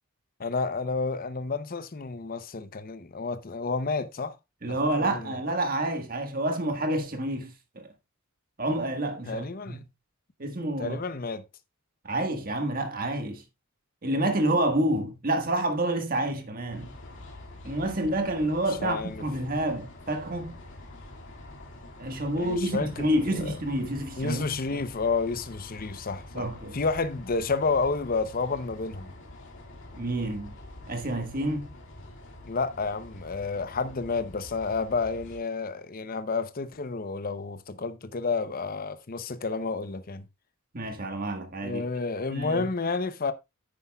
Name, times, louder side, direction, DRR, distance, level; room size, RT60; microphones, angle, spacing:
voice 1, 0.4-4.4 4.6-5.3 9.3-9.8 10.8-11.4 18.8-19.2 22.4-23.5 24.2-26.5 26.7-29.1 32.5-40.3 41.6-43.3, left 4 dB, 40° left, 0.7 m, -30 dB
voice 2, 4.6-7.9 8.6-9.8 10.4-11.0 12.0-13.4 14.0-17.0 17.6-20.6 22.0-24.4 24.7-24.8 26.3-26.8 29.9-30.6 30.9-31.7 40.7-41.8 42.3-42.7, right 1 dB, 40° right, 1.6 m, -28 dB
sound 1, 16.7-35.4, left 1 dB, 55° left, 2.3 m, -46 dB
9.7 x 9.6 x 2.3 m
head